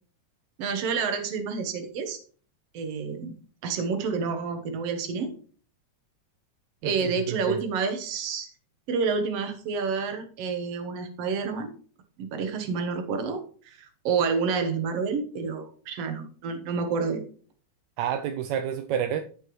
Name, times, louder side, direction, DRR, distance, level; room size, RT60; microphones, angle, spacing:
voice 1, 0.6-2.2 2.7-3.3 3.6-5.3 6.8-8.5 8.9-11.7 12.2-17.2, right 5 dB, 60° right, 2.0 m, -29 dB
voice 2, 6.8-7.6 18.0-19.2, right 9 dB, 80° right, 1.7 m, -29 dB
14.0 x 5.5 x 3.1 m
omnidirectional pair, 3.5 m